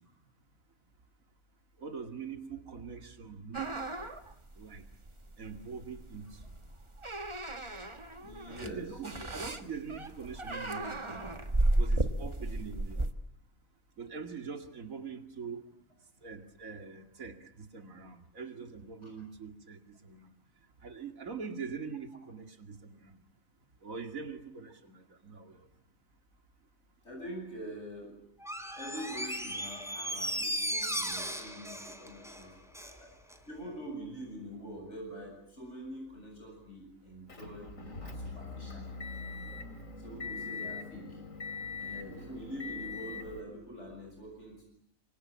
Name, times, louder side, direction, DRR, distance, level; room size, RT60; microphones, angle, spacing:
voice 1, 1.8-3.7 4.6-4.8 5.4-6.4 8.5-11.2 11.8-13.0 14.0-15.7 16.2-20.3 20.8-23.2 23.8-25.7, right 5 dB, 80° right, 7 dB, 2.7 m, -43 dB
sound 1, 3.5-13.1, right 1 dB, 20° right, 1.4 m, -34 dB
voice 2, 8.2-8.9 19.0-19.1 27.0-28.1 28.7-33.1 33.5-37.7 38.0-38.8 40.0-41.2 41.8-44.6, equal, 55° left, 1 dB, 8.5 m, -45 dB
Door, 28.4-33.0 33.3-33.4, equal, ahead, 3.4 m, -36 dB
Motor vehicle (road) / Engine, 37.3-43.4, left 4 dB, 75° left, 3.3 m, -42 dB
26.5 x 24.0 x 8.8 m, 0.68 s
omnidirectional pair, 1.4 m